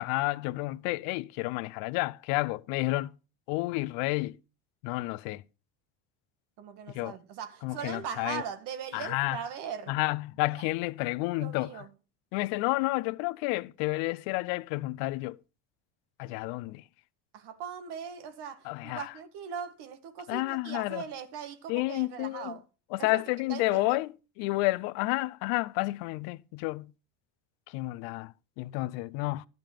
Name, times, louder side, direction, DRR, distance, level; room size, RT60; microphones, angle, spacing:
voice 1, 0.0-3.1 3.5-4.4 4.8-5.4 6.9-7.1 7.6-8.4 8.9-9.4 9.9-11.7 12.3-15.4 16.2-16.8 18.6-19.1 20.3-21.0 21.7-22.6 22.9-24.1 24.4-26.9 27.7-29.5, left 21 dB, 85° left, 0.7 m, -30 dB
voice 2, 6.6-9.9 10.5-10.6 11.4-11.9 17.3-22.6 23.0-24.0, right 7 dB, 70° right, 1.9 m, -40 dB
12.0 x 5.3 x 7.5 m
supercardioid pair, 105°, 42 cm